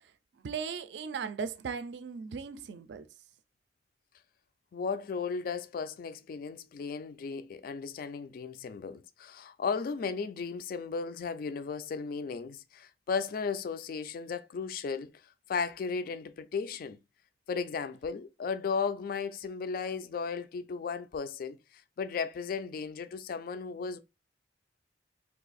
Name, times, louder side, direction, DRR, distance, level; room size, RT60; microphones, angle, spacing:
voice 1, 0.4-3.0, right 6 dB, 65° right, 0.4 m, -37 dB
voice 2, 4.7-15.1 15.5-17.0 17.5-24.0, left 5 dB, 50° left, 0.3 m, -35 dB
2.7 x 2.4 x 3.9 m
head